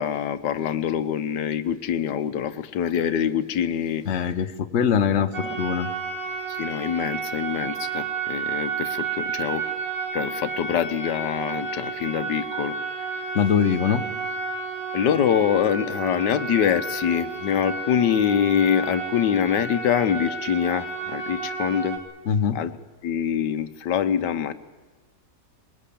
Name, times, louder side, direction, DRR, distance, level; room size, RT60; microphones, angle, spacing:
voice 1, 0.0-4.0 5.4-5.6 6.5-9.7 10.1-12.7 14.9-22.0 22.5-22.7 23.0-24.5, left 9 dB, 85° left, 11 dB, 1.5 m, -24 dB
voice 2, 4.1-5.9 13.3-14.0 22.3-22.6, left 7 dB, 50° left, 9 dB, 1.2 m, -22 dB
sound 1, 5.3-22.0, right 5 dB, 55° right, 3.2 m, -31 dB
21.5 x 20.5 x 8.5 m, 1.3 s
omnidirectional pair, 1.8 m